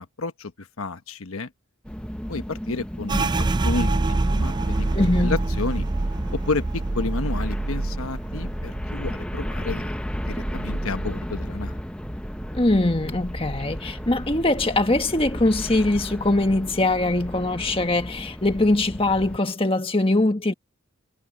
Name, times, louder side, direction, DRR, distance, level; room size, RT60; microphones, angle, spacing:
voice 1, 0.0-1.5 2.3-4.9 5.2-5.9 6.3-11.8, left 3 dB, 75° left, 1.1 m, -31 dB
sound 1, 1.8-19.4, equal, 5° left, 0.8 m, -34 dB
sound 2, 3.1-12.5 12.8-14.0 14.3-14.8 15.3-15.9, right 2 dB, 20° right, 0.4 m, -27 dB
voice 2, 4.9-5.4 12.5-20.5, left 2 dB, 25° left, 1.5 m, -22 dB
head